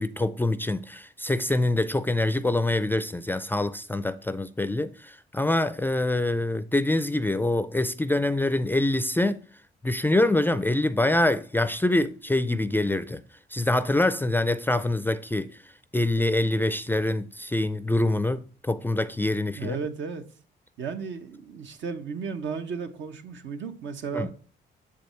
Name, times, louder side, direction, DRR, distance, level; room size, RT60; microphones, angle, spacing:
voice 1, 0.0-9.4 9.8-13.2 13.5-15.5 15.9-19.8 24.1-24.3, left 2 dB, 10° left, 0.4 m, -25 dB
voice 2, 19.5-20.2 20.8-24.3, right 5 dB, 70° right, 1.1 m, -34 dB
7.2 x 5.2 x 4.4 m
cardioid pair, 90°, 20 cm